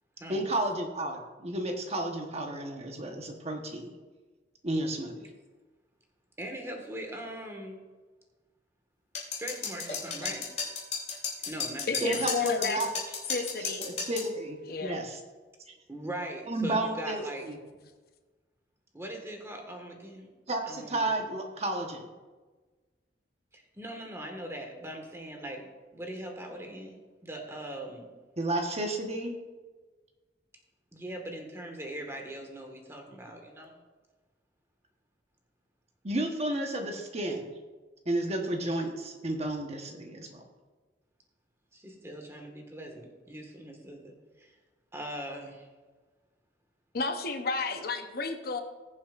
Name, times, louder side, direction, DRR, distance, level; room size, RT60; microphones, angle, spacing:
voice 1, 0.3-3.9 4.6-5.2 12.0-12.9 13.8-15.2 16.5-17.2 17.5-17.6 20.5-22.1 28.4-29.4 36.0-37.5 38.1-40.4, right 1 dB, 35° right, 3 dB, 1.1 m, -32 dB
voice 2, 6.4-7.8 9.3-10.5 11.4-12.3 15.9-17.5 18.9-20.3 20.7-21.2 23.5-25.6 25.9-28.1 30.9-33.8 41.7-44.5 44.9-45.7, right 1 dB, 15° right, 2 dB, 1.5 m, -41 dB
sound 1, 9.2-14.3, left 5 dB, 40° left, 2.7 m, -34 dB
voice 3, 11.9-12.8 13.3-13.9 14.7-15.0 46.9-48.6, left 4 dB, 55° left, 6 dB, 0.8 m, -32 dB
20.0 x 7.3 x 2.5 m, 1.3 s
head